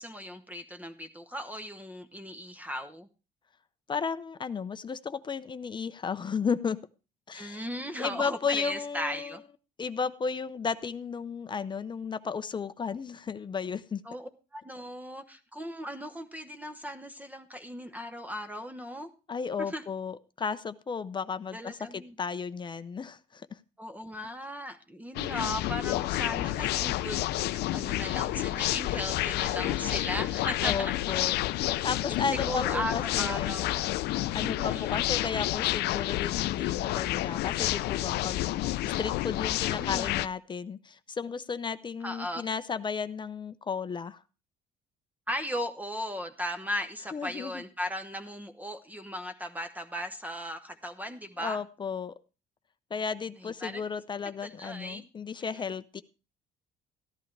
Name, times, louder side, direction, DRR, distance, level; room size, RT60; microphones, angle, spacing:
voice 1, 0.0-3.1 7.3-9.4 14.1-19.1 19.6-19.8 21.5-22.1 23.8-31.2 32.1-33.8 34.4-35.0 39.8-40.2 42.0-42.5 45.3-51.6 53.4-53.8 54.4-55.1 55.4-55.7, equal, 10° right, 8 dB, 0.9 m, -37 dB
voice 2, 3.9-6.8 7.3-7.7 8.0-9.4 9.8-14.0 19.3-23.5 30.6-31.4 31.8-33.6 34.3-44.2 47.1-47.6 51.4-52.1 52.9-56.0, left 5 dB, 30° left, 13 dB, 0.6 m, -34 dB
sound 1, 25.1-40.3, left 16 dB, 75° left, 0.5 m, -30 dB
14.0 x 11.0 x 3.3 m, 0.31 s
cardioid pair, 110°, 17 cm